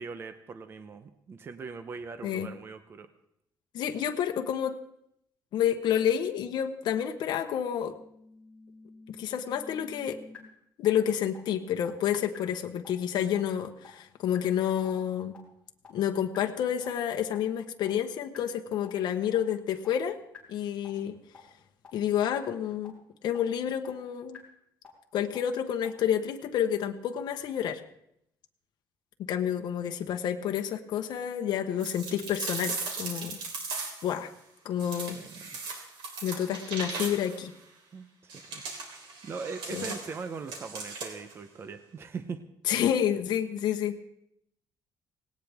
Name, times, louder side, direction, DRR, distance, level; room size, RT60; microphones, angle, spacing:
voice 1, 0.0-3.1 35.0-35.6 37.9-42.4, right 5 dB, 30° right, 9 dB, 0.8 m, -41 dB
voice 2, 3.7-4.8 5.5-7.9 9.2-10.2 10.8-15.4 15.9-20.2 20.5-21.2 21.9-23.0 23.2-24.4 25.1-27.8 29.2-33.4 34.0-34.3 34.6-35.2 36.2-37.5 39.7-39.9 42.7-44.0, left 9 dB, 60° left, 5 dB, 1.1 m, -29 dB
sound 1, 7.9-10.4 10.8-10.9 11.3-11.4 11.8-11.9 12.3-12.4 12.8-12.9 13.3-13.4 13.8-13.9 14.3-14.4 14.8-14.9 15.3-15.4 15.8-15.9 16.3-16.4 16.8-16.9 17.3-17.4 17.8-17.9 18.3-18.4 18.8-18.9 19.3-19.4 19.8-19.9 20.3-20.4 20.8-20.9 21.3-21.4 21.8-21.9 22.3-22.4 22.8-22.9 23.3-23.4 23.8-23.9 24.3-24.4 24.8-24.9 25.3-25.4 25.8-25.9, left 5 dB, 15° left, 4.4 m, -48 dB
sound 2, 31.8-34.2 34.8-37.4 38.3-41.3, right 4 dB, 80° right, 3.6 m, -38 dB
18.0 x 18.0 x 3.5 m, 0.75 s
cardioid pair, 175°, 8 cm